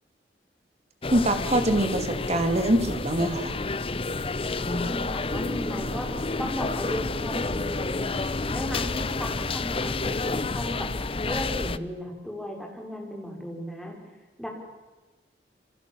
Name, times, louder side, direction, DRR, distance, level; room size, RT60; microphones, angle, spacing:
sound 1, 1.0-11.8, left 3 dB, 30° left, 0.8 m, -30 dB
voice 1, 1.1-3.5, right 1 dB, 40° right, 7 dB, 2.7 m, -24 dB
voice 2, 4.6-6.1 6.4-8.2 8.5-10.9 11.2-14.0 14.4-14.5, equal, ahead, 0 dB, 5.4 m, -35 dB
28.0 x 27.0 x 7.2 m, 1.2 s
head